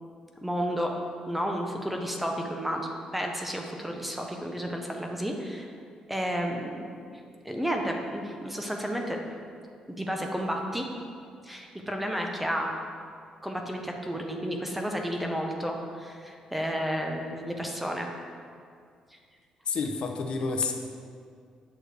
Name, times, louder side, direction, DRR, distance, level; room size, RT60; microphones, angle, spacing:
voice 1, 0.4-1.0 1.3-5.7 6.1-9.2 9.9-10.9 11.4-12.7 13.4-18.1 19.1-19.2, equal, 5° right, 2 dB, 0.6 m, -32 dB
voice 2, 19.7-20.7, left 4 dB, 50° left, 3 dB, 0.7 m, -29 dB
8.8 x 6.4 x 3.3 m, 2.2 s
cardioid pair, 145°, 2 cm